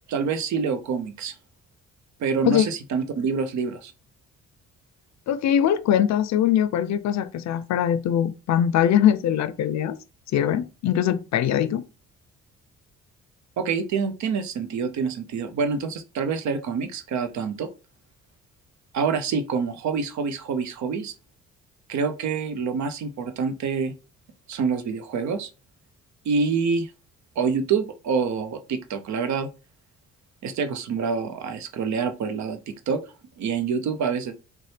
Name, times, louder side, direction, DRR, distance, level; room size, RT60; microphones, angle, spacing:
voice 1, 0.1-1.3 2.2-3.9 13.6-17.7 18.9-21.1 21.9-23.9 24.5-25.5 26.2-26.9 27.4-29.5 30.4-33.0 33.4-34.3, right 5 dB, 70° right, 0.7 m, -26 dB
voice 2, 5.3-10.0 10.3-11.8, left 10 dB, 65° left, 0.5 m, -22 dB
4.1 x 2.2 x 3.3 m
cardioid pair, 90°, 30 cm